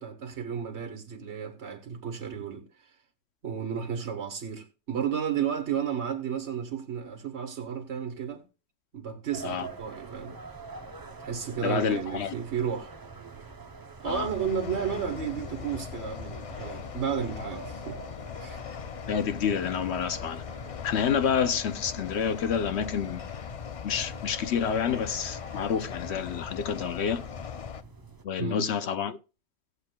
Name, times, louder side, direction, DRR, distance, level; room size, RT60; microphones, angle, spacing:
voice 1, 0.0-2.6 3.4-8.4 8.9-10.4 11.2-12.9 14.0-18.0 18.4-18.6 28.4-28.7, right 7 dB, 75° right, 1.7 m, -32 dB
sound 1, 9.3-28.2, right 3 dB, 25° right, 0.6 m, -46 dB
voice 2, 11.6-12.3 14.0-14.3 19.1-20.4 20.8-23.2 23.8-27.2 28.2-29.2, left 7 dB, 75° left, 1.0 m, -28 dB
sound 2, 14.1-27.8, left 7 dB, 45° left, 0.4 m, -40 dB
18.0 x 8.0 x 2.3 m
omnidirectional pair, 1.1 m